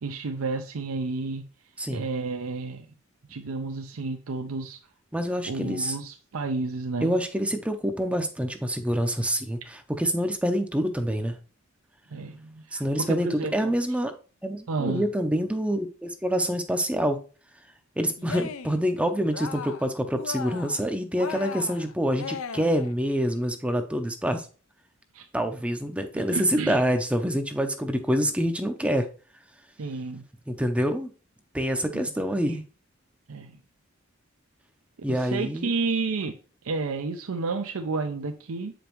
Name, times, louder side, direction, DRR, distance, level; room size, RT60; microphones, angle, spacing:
voice 1, 0.0-1.4 1.9-2.9 3.3-4.8 5.5-7.1 12.1-13.7 14.7-15.1 25.1-25.3 26.3-26.8 29.8-30.2 31.9-32.4 33.3-33.6 35.1-36.4 36.6-38.7, right 3 dB, 85° right, 6 dB, 0.6 m, -31 dB
voice 2, 5.1-6.0 7.0-11.4 12.7-14.1 14.4-17.2 18.0-24.5 25.3-29.1 30.5-31.1 31.5-32.6 35.0-35.7, equal, 5° right, 6 dB, 0.5 m, -26 dB
Cheering, 18.2-18.8 19.2-19.9 20.1-20.8 21.2-22.9, left 6 dB, 80° left, 0.6 m, -37 dB
7.8 x 5.1 x 3.0 m, 0.37 s
head